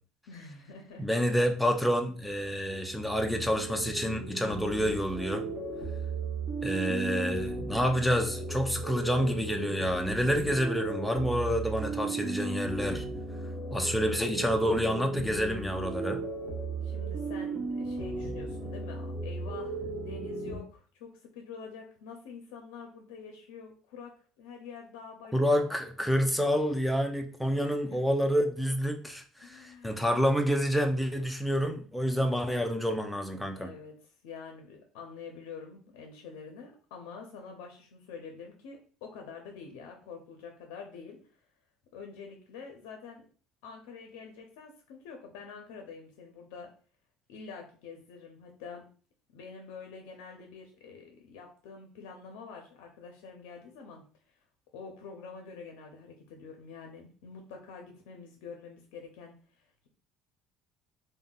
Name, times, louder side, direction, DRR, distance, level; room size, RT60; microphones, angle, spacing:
voice 1, 0.3-1.1 16.8-25.8 27.5-28.0 29.4-30.0 33.4-41.2 41.9-43.3 43.6-46.7 47.3-48.9 49.3-54.0 54.7-59.9, left 5 dB, 85° left, 3 dB, 0.5 m, -47 dB
voice 2, 1.0-5.4 6.6-13.0 13.7-16.2 25.3-33.7, equal, ahead, 4 dB, 0.5 m, -28 dB
sound 1, 2.2-20.6, right 3 dB, 20° right, 1.0 m, -36 dB
3.5 x 2.0 x 2.3 m, 0.41 s
supercardioid pair, 95°, 0 cm